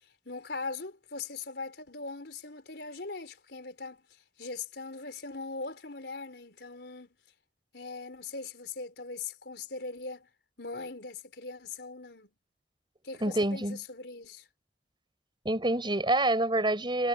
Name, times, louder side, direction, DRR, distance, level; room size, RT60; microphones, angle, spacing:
voice 1, 0.0-7.2 7.7-10.3 10.6-12.3 13.0-14.5, left 3 dB, 70° left, 4.5 m, -40 dB
voice 2, 13.2-13.8 15.4-17.1, right 1 dB, 25° right, 6.0 m, -27 dB
head